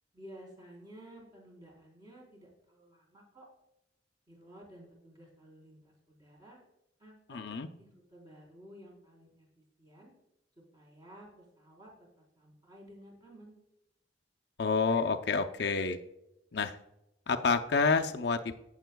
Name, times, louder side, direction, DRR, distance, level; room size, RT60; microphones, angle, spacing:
voice 1, 0.1-3.5 4.3-6.6 7.0-10.1 10.6-13.6, equal, 20° right, -2 dB, 4.0 m, -54 dB
voice 2, 7.3-7.7 14.6-16.0 16.5-16.8 17.3-18.6, left 4 dB, 60° left, 6 dB, 0.6 m, -28 dB
17.0 x 7.3 x 2.3 m, 0.88 s
head